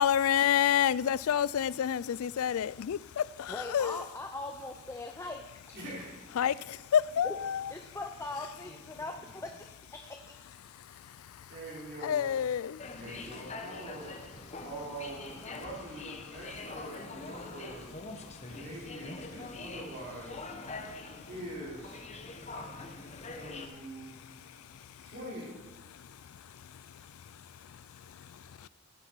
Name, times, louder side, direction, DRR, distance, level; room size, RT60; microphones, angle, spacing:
voice 1, 0.0-4.1 6.4-7.7 10.6-11.5 12.0-13.0 14.5-14.6 18.3-18.5 20.8-21.3 22.2-22.6 24.4-25.1 25.9-26.8 27.2-28.7, left 9 dB, 65° left, 0.3 m, -31 dB
voice 2, 3.5-5.4 7.2-7.3 7.7-9.1 9.4-9.6 9.9-10.2, left 2 dB, 15° left, 0.6 m, -40 dB
voice 3, 5.7-6.2 6.4-6.6 8.6-9.3 10.7-11.2 11.5-12.2 13.0-20.6 21.3-22.1 22.5-24.7 25.0-25.5, right 1 dB, 50° right, 3.9 m, -45 dB
sound 1, 12.8-23.7, left 3 dB, 30° left, 1.0 m, -44 dB
15.0 x 10.5 x 4.6 m
head